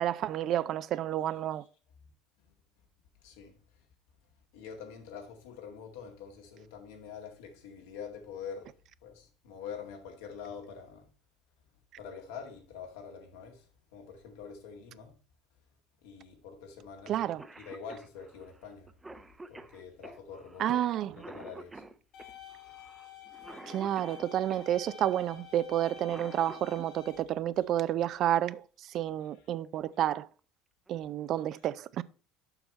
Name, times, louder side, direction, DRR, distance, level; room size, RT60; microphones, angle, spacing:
voice 1, 0.0-1.7 17.1-17.4 20.6-21.1 23.7-30.3 30.9-32.0, right 11 dB, 55° right, 0.4 m, -30 dB
voice 2, 3.2-3.6 4.5-8.8 9.0-11.1 12.0-13.7 13.9-15.1 16.0-17.2 17.6-18.9 19.5-20.8 21.2-21.8, left 6 dB, 85° left, 1.9 m, -45 dB
Cough, 17.1-17.2 17.4-24.7 25.8-26.9 28.5-28.6 29.6-29.9 30.4-30.5 30.9-31.3, right 2 dB, 15° right, 0.6 m, -49 dB
sound 1, 22.1-27.2, left 9 dB, 60° left, 1.8 m, -49 dB
7.0 x 5.6 x 4.3 m
supercardioid pair, 95°, 0 cm